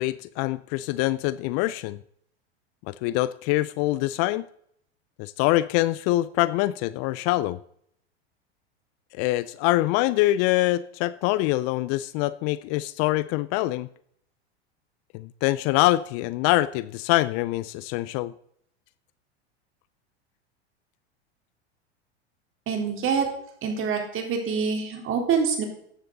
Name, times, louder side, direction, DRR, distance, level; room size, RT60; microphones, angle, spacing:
voice 1, 0.0-2.0 2.9-4.5 5.2-7.6 9.1-13.9 15.1-18.3, left 17 dB, 45° left, 18 dB, 0.5 m, -24 dB
voice 2, 22.7-23.2 23.6-25.6, right 6 dB, 35° right, 3 dB, 3.8 m, -25 dB
14.0 x 9.9 x 4.0 m, 0.68 s
hypercardioid pair, 100°, 33 cm